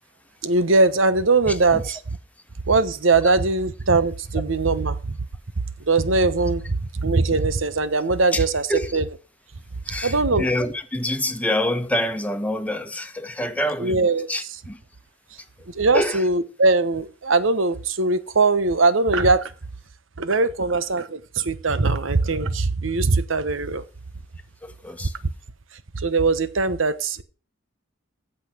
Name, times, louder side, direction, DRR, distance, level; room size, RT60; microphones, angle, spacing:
voice 1, 0.4-2.0 2.7-5.0 5.9-8.6 8.9-9.0 10.0-10.4 13.8-14.3 15.7-19.5 20.2-23.8 26.0-27.2, right 3 dB, 75° right, 1.1 m, -20 dB
voice 2, 1.5-2.0 3.2-3.3 8.3-9.0 9.8-14.8 15.4-15.5 15.9-16.3 24.6-25.2, left 1 dB, 10° left, 1.3 m, -27 dB
15.0 x 5.7 x 6.2 m
head